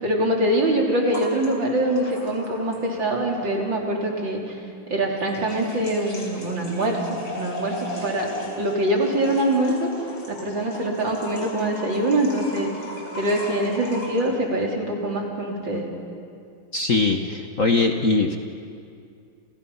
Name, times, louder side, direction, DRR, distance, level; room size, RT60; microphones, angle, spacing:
voice 1, 0.0-4.4 4.9-8.3 8.6-9.9 10.3-12.7 13.1-15.8, right 1 dB, 60° right, -1 dB, 4.4 m, -24 dB
sound 1, 1.1-3.1 3.3-3.4 5.2-14.3, left 2 dB, 60° left, 4.9 m, -37 dB
voice 2, 16.7-18.4, left 3 dB, 45° left, 4 dB, 1.4 m, -21 dB
30.0 x 30.0 x 5.7 m, 2.4 s
omnidirectional pair, 2.4 m